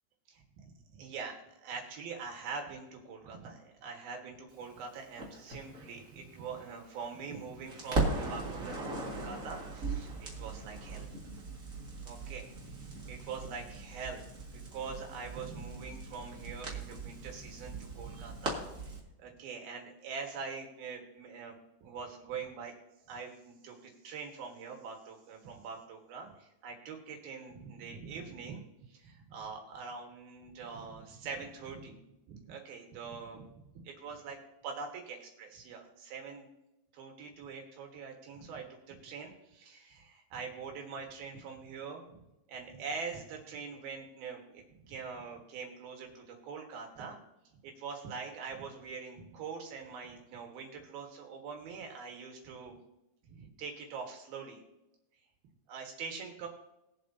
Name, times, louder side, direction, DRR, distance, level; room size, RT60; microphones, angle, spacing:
voice 1, 0.6-1.3 1.6-11.1 12.1-14.3 14.5-18.9 19.2-22.7 23.1-28.6 28.9-32.0 32.3-33.4 33.7-34.4 34.6-36.5 36.9-42.0 42.5-47.2 47.6-52.8 53.3-54.6 55.7-56.5, right 5 dB, 65° right, 2 dB, 3.0 m, -44 dB
Crackle, 5.2-7.3 7.7-19.0, right 3 dB, 85° right, 0.7 m, -39 dB
21.0 x 7.7 x 2.7 m, 0.93 s
omnidirectional pair, 5.1 m